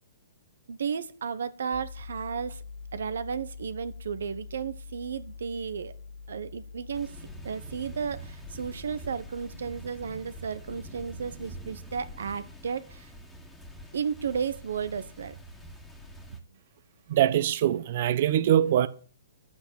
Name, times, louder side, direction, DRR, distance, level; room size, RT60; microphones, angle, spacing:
voice 1, 0.7-2.6 2.9-5.9 6.3-7.2 7.4-13.1 13.9-15.4, right 6 dB, 80° right, 1.2 m, -33 dB
sound 1, 1.7-12.8, left 4 dB, 85° left, 3.7 m, -46 dB
sound 2, 6.9-16.4, right 1 dB, 5° left, 1.9 m, -46 dB
voice 2, 17.1-18.9, right 11 dB, 50° right, 1.0 m, -23 dB
11.5 x 8.7 x 7.1 m
hypercardioid pair, 150°, 0 cm